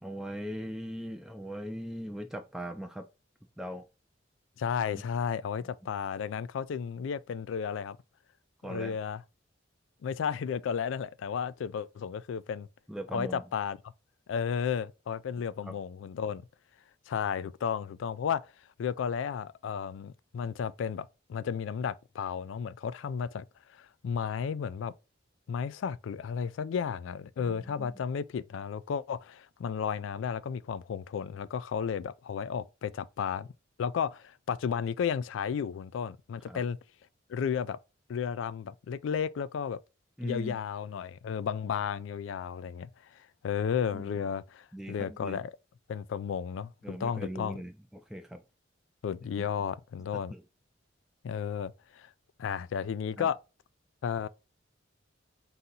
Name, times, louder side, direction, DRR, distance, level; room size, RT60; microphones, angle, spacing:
voice 1, 0.0-3.0 3.6-3.8 4.9-5.0 8.6-9.0 12.9-13.4 15.6-15.7 27.4-28.0 36.5-36.6 40.2-40.6 43.9-44.1 44.7-45.4 46.8-48.4 49.4-49.5 50.3-50.4 53.2-53.3, equal, ahead, 0.3 m, -40 dB
voice 2, 4.6-8.0 8.7-9.2 10.0-12.7 13.1-13.8 14.3-16.4 17.1-18.4 18.8-23.4 23.7-24.9 25.5-33.5 33.8-36.8 37.3-37.8 38.1-39.8 40.2-42.9 43.2-45.5 45.9-47.6 49.0-50.3 51.2-52.1 52.4-53.4 54.0-54.3, left 7 dB, 80° left, 0.3 m, -33 dB
3.9 x 2.8 x 3.8 m
head